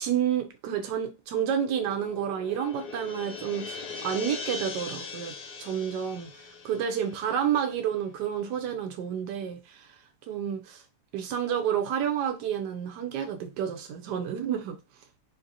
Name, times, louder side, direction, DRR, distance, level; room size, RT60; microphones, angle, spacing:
voice 1, 0.0-5.3 5.6-10.0 10.3-10.8 11.1-14.8, right 9 dB, 90° right, 1.2 m, -30 dB
sound 1, 1.5-8.1, left 4 dB, 75° left, 1.2 m, -40 dB
3.7 x 2.5 x 2.7 m
omnidirectional pair, 1.8 m